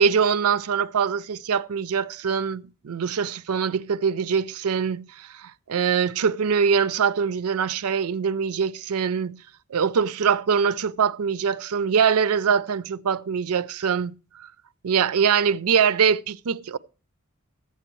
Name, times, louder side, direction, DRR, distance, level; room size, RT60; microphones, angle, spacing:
voice 1, 0.0-9.4 9.7-14.2 14.8-16.8, right 6 dB, 80° right, 0.5 m, -23 dB
14.5 x 8.9 x 3.0 m
head